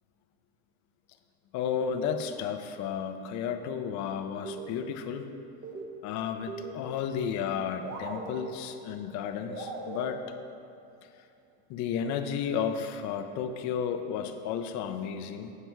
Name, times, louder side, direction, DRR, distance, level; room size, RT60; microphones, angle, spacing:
voice 1, 1.5-5.3 6.0-10.2 11.7-15.5, left 7 dB, 50° left, 8 dB, 0.7 m, -33 dB
sound 1, 4.4-5.2 5.5-7.2 7.5-7.6 7.8-9.0 9.5-11.0, right 2 dB, 30° right, 1.1 m, -41 dB
8.6 x 8.3 x 4.5 m, 2.4 s
cardioid pair, 160°, 36 cm